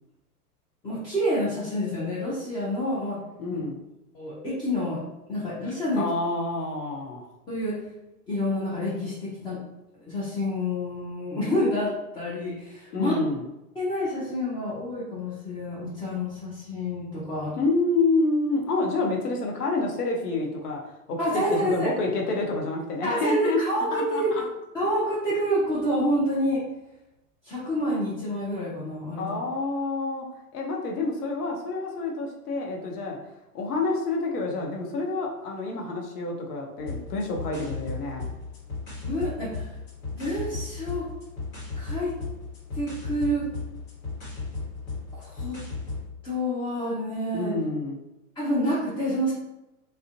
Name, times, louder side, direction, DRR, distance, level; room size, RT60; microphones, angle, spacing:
voice 1, 0.8-3.2 3.5-3.6 4.1-5.0 5.3-6.0 7.5-7.8 8.3-9.6 9.9-13.2 13.8-17.5 21.2-21.9 23.0-24.5 24.7-26.6 27.4-29.3 39.0-39.7 40.1-41.1 41.8-42.2 42.7-43.4 45.1-45.6 46.2-47.5 48.4-49.3, equal, 10° left, -9 dB, 0.4 m, -28 dB
voice 2, 3.4-3.8 6.0-7.2 12.9-13.4 17.6-20.8 21.1-23.6 23.9-24.4 29.2-30.3 30.5-33.2 33.5-38.3 47.3-48.0, left 3 dB, 80° left, 0 dB, 0.7 m, -28 dB
sound 1, 36.8-46.1, left 3 dB, 60° left, 1.2 m, -36 dB
2.4 x 2.1 x 2.5 m, 0.95 s
hypercardioid pair, 95°, 46 cm